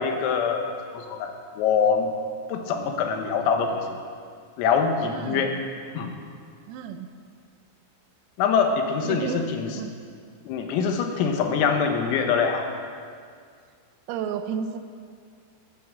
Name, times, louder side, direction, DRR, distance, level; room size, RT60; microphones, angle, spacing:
voice 1, 0.0-2.1 2.5-4.0 4.6-5.5 6.0-6.1 8.4-9.7 10.5-12.7, left 6 dB, 85° left, 4 dB, 4.0 m, -24 dB
voice 2, 5.0-5.6 6.7-7.1 9.0-9.9 14.1-14.8, right 7 dB, 85° right, 8 dB, 3.6 m, -32 dB
18.5 x 8.8 x 7.4 m, 2.1 s
omnidirectional pair, 6.0 m